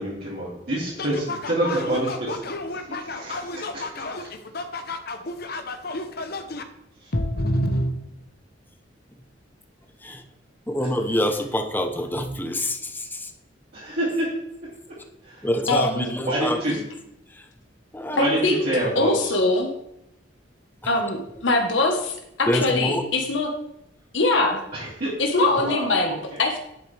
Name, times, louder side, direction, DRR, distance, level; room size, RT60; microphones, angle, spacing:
voice 1, 0.0-2.3 2.9-3.6 13.7-14.3 15.2-15.5 16.2-16.7 18.1-19.3 24.7-25.1 25.4-26.2, right 1 dB, 55° right, -9 dB, 2.7 m, -27 dB
voice 2, 1.0-6.6 7.1-8.2, left 1 dB, 55° left, 7 dB, 1.0 m, -30 dB
voice 3, 10.7-13.3 15.4-16.9 17.3-17.5 17.9-18.3 20.8-20.9 22.5-23.1, equal, 10° left, 6 dB, 0.8 m, -26 dB
voice 4, 15.7-16.1 18.1-18.7 18.9-19.7 20.9-23.5 24.1-24.6 25.2-26.6, left 2 dB, 85° left, 2 dB, 1.4 m, -22 dB
10.5 x 8.4 x 3.4 m, 0.81 s
head